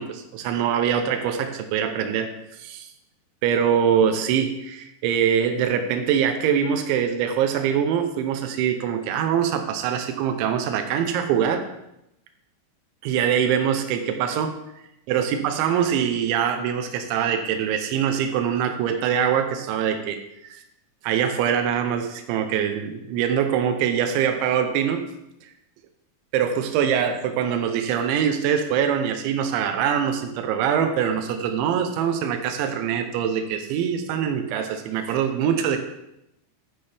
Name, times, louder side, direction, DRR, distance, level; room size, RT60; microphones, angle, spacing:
voice 1, 0.0-2.9 3.4-11.6 13.0-14.6 15.1-20.2 20.4-20.6 21.0-25.0 26.3-35.8, right 8 dB, 90° right, 6 dB, 3.2 m, -23 dB
11.5 x 9.6 x 3.4 m, 0.84 s
omnidirectional pair, 5.2 m